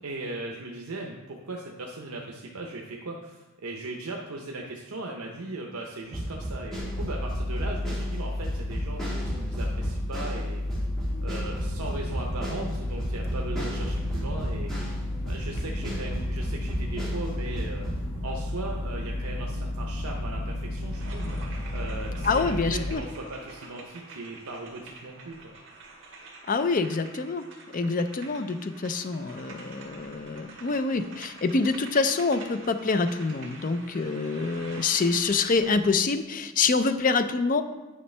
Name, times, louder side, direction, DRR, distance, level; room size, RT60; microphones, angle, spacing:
voice 1, 0.0-10.8 11.2-14.7 15.3-21.4 21.7-25.5, right 2 dB, 75° right, 0 dB, 0.7 m, -38 dB
sound 1, 6.1-15.0 15.3-18.0, right 1 dB, ahead, 2.0 m, -34 dB
sound 2, 6.8-22.9, left 1 dB, 80° left, 1.1 m, -32 dB
sound 3, 20.9-36.0, right 3 dB, 55° right, 1.7 m, -47 dB
voice 2, 22.2-23.0 26.5-27.4 27.7-37.6, left 4 dB, 35° left, 9 dB, 0.4 m, -26 dB
9.6 x 5.5 x 3.3 m, 1.2 s
head